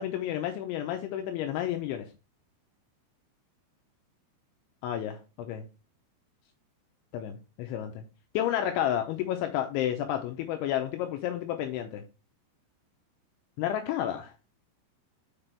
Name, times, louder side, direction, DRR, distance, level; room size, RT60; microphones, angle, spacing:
voice 1, 0.0-2.1 4.8-5.6 7.1-8.0 8.3-12.0 13.6-14.3, left 11 dB, 85° left, 5 dB, 2.8 m, -31 dB
6.8 x 5.8 x 3.3 m, 0.31 s
omnidirectional pair, 5.9 m